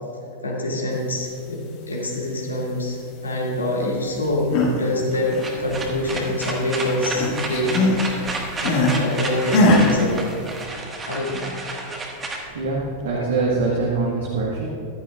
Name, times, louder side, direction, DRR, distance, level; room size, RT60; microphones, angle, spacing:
voice 1, 0.4-1.6 1.9-8.3 8.6-10.3 11.1-11.5 13.1-13.2, left 1 dB, 75° left, -2 dB, 2.2 m, -25 dB
sound 1, 4.2-4.8 5.1-6.6 6.8-9.0 9.5-9.9, left 2 dB, 45° left, 1.9 m, -21 dB
sound 2, 5.1-13.2, right 2 dB, 20° right, 1.6 m, -31 dB
voice 2, 12.4-14.7, right 3 dB, 65° right, -3 dB, 1.5 m, -24 dB
15.0 x 12.0 x 2.4 m, 2.4 s
figure-of-eight pair, 90°, 0 cm